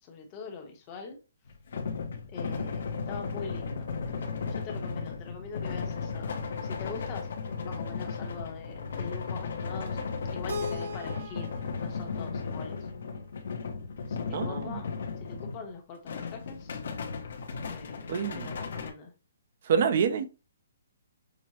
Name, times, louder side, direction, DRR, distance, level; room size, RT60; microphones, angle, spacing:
voice 1, 0.0-1.2 2.3-3.9 4.5-10.0 10.3-12.9 14.1-14.9 15.2-16.8 17.7-19.1, left 5 dB, 20° left, 0.8 m, -43 dB
sound 1, 1.5-15.7 16.1-18.9, left 5 dB, 55° left, 0.7 m, -35 dB
Keyboard (musical), 10.5-13.4, left 2 dB, 80° right, 1.1 m, -40 dB
voice 2, 14.3-14.6 18.1-18.4 19.7-20.3, right 6 dB, 40° right, 0.5 m, -26 dB
6.0 x 2.0 x 2.9 m
hypercardioid pair, 175°, 0 cm